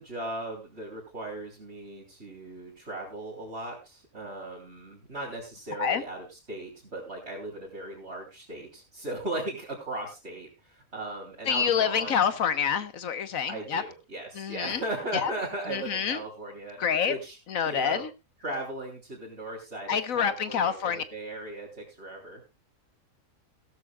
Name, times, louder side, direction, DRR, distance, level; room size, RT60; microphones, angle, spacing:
voice 1, 0.0-12.4 13.5-16.8 17.1-17.4 17.6-18.0 18.4-22.4, right 2 dB, 50° right, -5 dB, 3.6 m, -37 dB
voice 2, 11.5-13.8 14.4-14.8 15.2-15.3 15.7-16.2 16.8-17.1 17.5-18.1 19.9-21.0, left 7 dB, 75° left, 12 dB, 1.4 m, -27 dB
17.0 x 13.0 x 2.3 m, 0.26 s
omnidirectional pair, 1.5 m